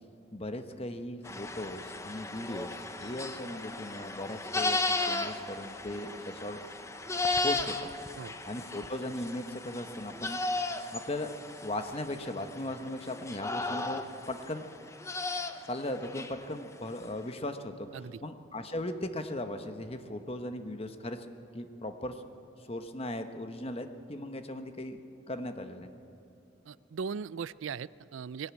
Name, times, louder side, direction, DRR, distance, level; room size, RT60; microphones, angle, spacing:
voice 1, 0.3-6.6 7.4-7.9 8.5-10.4 10.9-11.3 11.6-14.6 15.7-17.9 18.2-21.2 21.5-22.2 22.7-25.0 25.3-25.9, left 1 dB, 30° left, 7 dB, 1.1 m, -38 dB
sound 1, 1.2-16.4, left 3 dB, 15° left, 0.8 m, -35 dB
voice 2, 26.7-28.5, right 6 dB, 80° right, 19 dB, 0.4 m, -38 dB
21.0 x 17.5 x 8.4 m, 2.7 s
head